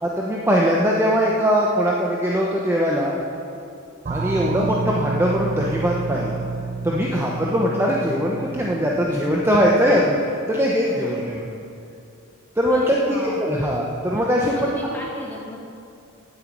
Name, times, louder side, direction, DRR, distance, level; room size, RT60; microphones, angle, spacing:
voice 1, 0.0-3.2 4.1-6.4 6.8-11.6 12.6-14.7, equal, 10° right, -3 dB, 0.9 m, -21 dB
sound 1, 4.0-10.4, right 4 dB, 35° right, 0.4 m, -30 dB
voice 2, 7.1-7.4 9.1-9.2 10.8-11.2 12.7-13.7 14.5-15.6, left 1 dB, 10° left, -4 dB, 2.4 m, -36 dB
9.3 x 9.2 x 8.5 m, 2.6 s
head